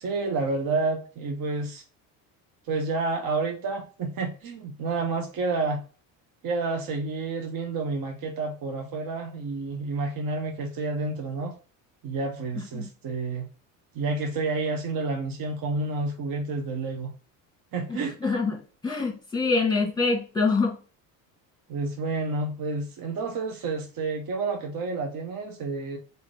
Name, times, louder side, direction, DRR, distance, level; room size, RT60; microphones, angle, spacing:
voice 1, 0.0-1.8 2.7-5.8 6.4-11.5 12.0-13.5 13.9-17.1 17.7-18.1 21.7-26.0, right 3 dB, 50° right, 1.0 m, -29 dB
voice 2, 12.6-12.9 17.9-18.6 18.8-20.8, left 4 dB, 10° left, 1.4 m, -25 dB
3.7 x 2.8 x 4.7 m
supercardioid pair, 90°, 44 cm